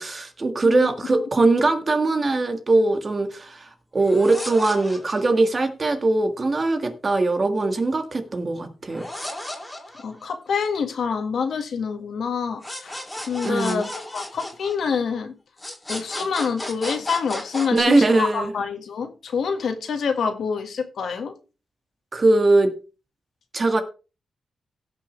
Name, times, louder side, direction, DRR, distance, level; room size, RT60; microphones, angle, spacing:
voice 1, 0.0-9.1 13.4-13.8 17.7-18.5 22.1-22.7 23.5-23.8, right 2 dB, 30° right, 1.6 m, -21 dB
sound 1, 4.0-5.4 8.9-10.5 12.6-15.2 15.6-17.8, left 1 dB, 10° left, 2.9 m, -34 dB
voice 2, 10.0-13.0 13.3-15.3 15.9-21.3, left 6 dB, 70° left, 1.8 m, -26 dB
17.0 x 6.1 x 3.3 m
wide cardioid pair, 115°, 0 cm